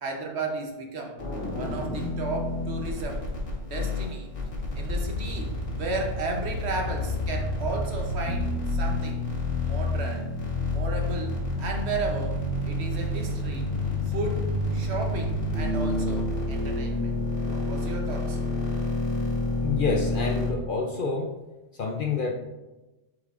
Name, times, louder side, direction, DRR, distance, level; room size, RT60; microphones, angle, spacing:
voice 1, 0.0-1.2 1.5-3.3 3.6-4.3 4.8-9.2 9.6-10.3 10.7-13.7 14.1-17.1 17.5-18.4, right 3 dB, 60° right, 2 dB, 1.2 m, -34 dB
sound 1, 1.2-20.5, left 2 dB, 75° left, 1.9 m, -29 dB
sound 2, 8.3-15.9 18.9-19.0, equal, 5° left, 1.1 m, -44 dB
voice 2, 19.6-21.3 21.7-22.3, left 4 dB, 55° left, 2 dB, 0.7 m, -28 dB
8.2 x 5.1 x 2.5 m, 1.1 s
omnidirectional pair, 1.3 m